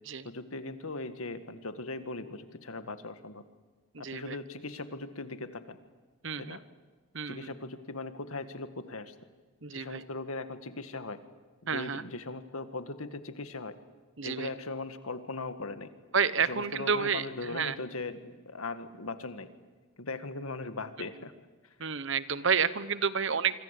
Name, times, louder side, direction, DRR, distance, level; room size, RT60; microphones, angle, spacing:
voice 1, 0.2-3.4 4.0-5.8 6.4-6.6 7.3-9.1 9.7-11.2 11.7-13.7 14.2-15.9 16.4-19.5 20.0-21.3, left 3 dB, 80° left, 10 dB, 1.9 m, -39 dB
voice 2, 3.9-4.4 6.2-6.6 7.1-7.5 9.6-10.0 11.7-12.0 14.2-14.5 16.1-17.8 21.8-23.6, right 6 dB, 60° right, 15 dB, 1.1 m, -30 dB
26.0 x 25.5 x 8.5 m, 1.3 s
head